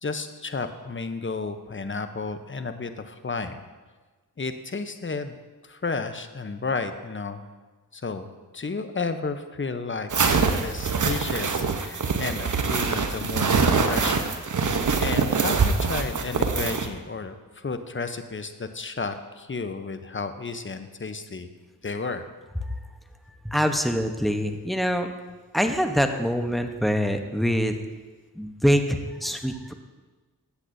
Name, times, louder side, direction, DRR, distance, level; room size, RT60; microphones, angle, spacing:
voice 1, 0.0-3.6 4.4-5.4 5.6-7.5 7.9-8.3 8.5-14.3 15.0-21.5 21.8-22.3, left 4 dB, 30° left, 9 dB, 0.8 m, -32 dB
sound 1, 10.1-16.9, right 4 dB, 50° right, 1.0 m, -24 dB
voice 2, 23.4-25.1 25.5-27.7 28.4-29.7, equal, ahead, 6 dB, 1.0 m, -24 dB
14.0 x 8.1 x 2.7 m, 1.3 s
cardioid pair, 40°, 38 cm